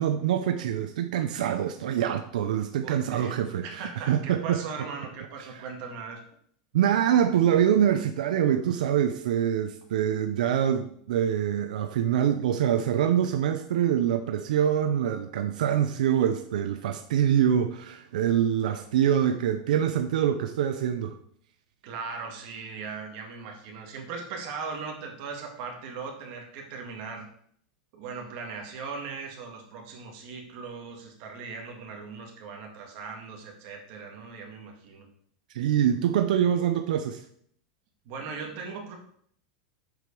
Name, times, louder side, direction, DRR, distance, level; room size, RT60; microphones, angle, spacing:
voice 1, 0.0-4.6 5.5-5.6 6.7-21.2 35.5-37.2, right 9 dB, 85° right, 8 dB, 0.7 m, -25 dB
voice 2, 2.8-6.2 21.8-27.3 27.9-35.1 38.1-39.0, right 5 dB, 40° right, 2 dB, 1.9 m, -39 dB
7.8 x 5.0 x 5.3 m, 0.64 s
supercardioid pair, 175°, 4 cm